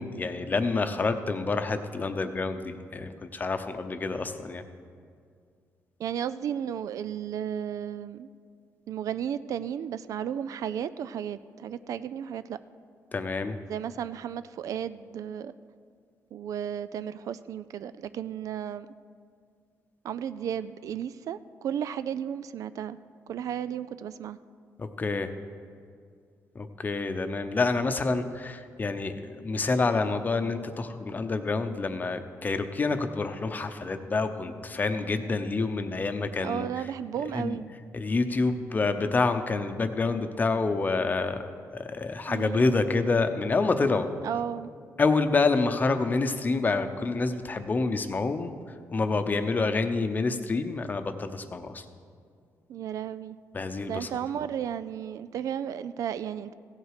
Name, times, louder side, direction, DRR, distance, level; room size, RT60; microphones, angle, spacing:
voice 1, 0.0-4.6 13.1-13.6 24.8-25.3 26.5-36.8 37.3-37.6 37.9-41.4 41.7-44.1 45.0-48.5 48.9-51.8 53.5-54.1, left 3 dB, 30° left, 8 dB, 0.7 m, -27 dB
voice 2, 6.0-8.3 8.9-12.6 13.7-15.5 16.3-18.9 20.0-23.0 23.3-24.4 36.4-37.7 42.3-42.7 44.2-44.7 52.7-53.4 53.9-56.5, right 9 dB, 75° right, 14 dB, 0.4 m, -34 dB
16.0 x 8.1 x 4.9 m, 2.2 s
cardioid pair, 110°, 6 cm